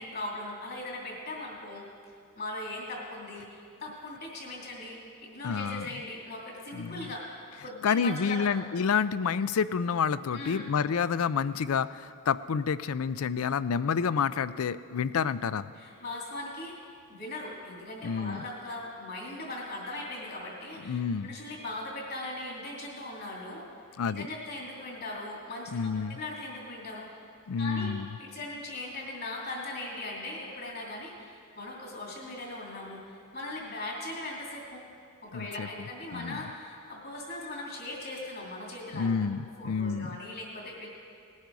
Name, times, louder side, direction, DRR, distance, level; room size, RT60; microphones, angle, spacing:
voice 1, 0.0-1.8 2.3-7.3 7.6-8.5 10.3-10.7 15.7-16.7 17.1-23.7 24.0-27.3 27.6-27.9 28.2-34.8 35.2-39.2 39.6-40.9, left 2 dB, 45° left, -3 dB, 2.9 m, -39 dB
voice 2, 5.4-5.9 6.7-7.1 7.8-15.7 18.0-18.4 20.9-21.3 24.0-24.3 25.7-26.2 27.5-28.1 35.3-35.7 36.1-36.4 38.9-40.1, left 6 dB, 75° left, 16 dB, 0.4 m, -29 dB
19.5 x 10.5 x 4.7 m, 2.3 s
head